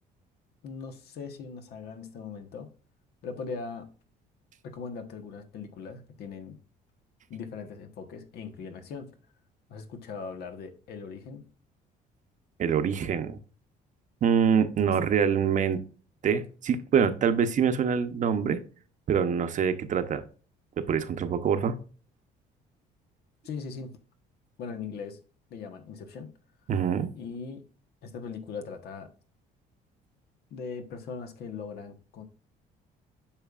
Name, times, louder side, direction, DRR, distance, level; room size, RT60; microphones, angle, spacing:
voice 1, 0.6-2.7 3.2-3.9 4.6-6.6 7.3-9.1 9.7-11.4 23.4-24.0 24.6-25.2 25.5-26.3 27.1-27.6 28.0-29.1 30.5-32.2, left 5 dB, 70° left, 1.3 m, -40 dB
voice 2, 12.6-13.4 14.2-15.8 16.2-18.6 19.1-20.2 20.8-21.8 26.7-27.1, right 7 dB, 50° right, 0.9 m, -25 dB
8.9 x 5.4 x 2.5 m
cardioid pair, 110°, 17 cm